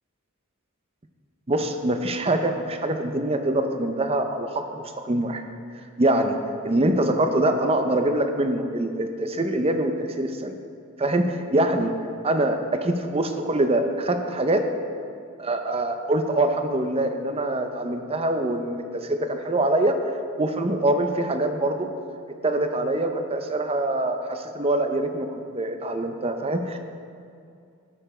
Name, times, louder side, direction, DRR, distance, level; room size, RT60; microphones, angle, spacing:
voice 1, 1.5-5.4 6.0-6.4 6.6-10.6 11.0-12.0 12.2-14.7 15.4-20.0 20.4-21.9 22.4-26.8, right 1 dB, 30° right, 6 dB, 0.6 m, -24 dB
12.5 x 6.9 x 4.4 m, 2.4 s
head